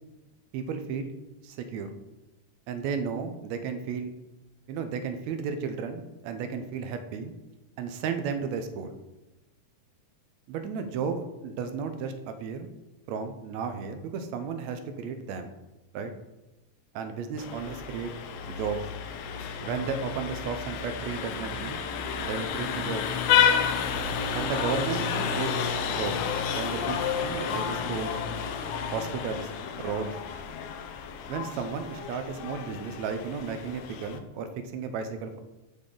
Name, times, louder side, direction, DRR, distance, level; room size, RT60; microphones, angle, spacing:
voice 1, 0.5-1.1 1.4-1.9 2.7-4.1 4.7-7.3 7.8-9.0 10.5-12.7 13.1-15.5 15.9-16.1 17.0-18.1 18.5-18.8 19.6-21.8 22.2-23.0 24.3-26.2 26.5-28.2 28.9-29.5 29.8-30.1 31.3-35.4, right 5 dB, 75° right, 7 dB, 1.8 m, -33 dB
Vehicle horn car horn honking, 17.4-34.2, left 7 dB, 80° left, 1.4 m, -30 dB
11.5 x 4.1 x 3.7 m, 1.0 s
omnidirectional pair, 3.4 m